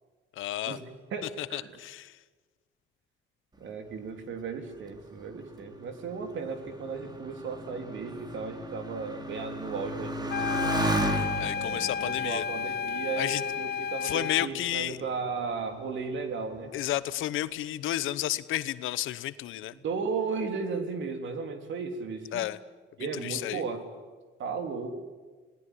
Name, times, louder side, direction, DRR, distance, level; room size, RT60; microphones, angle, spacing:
voice 1, 0.4-0.8 1.2-2.1 11.4-12.4 13.2-13.4 14.0-15.0 16.7-19.7 22.3-22.6 23.0-23.6, left 14 dB, 85° left, 15 dB, 1.0 m, -32 dB
voice 2, 1.1-1.7 3.6-10.8 11.5-16.7 19.8-22.5 23.0-23.8 24.4-25.0, right 5 dB, 70° right, 6 dB, 3.5 m, -35 dB
Motorcycle, 5.0-13.9 14.7-15.3, right 2 dB, 20° right, 2.9 m, -35 dB
sound 1, 10.3-14.5, left 7 dB, 55° left, 0.8 m, -32 dB
27.5 x 19.0 x 10.0 m, 1.4 s
cardioid pair, 90°, 20 cm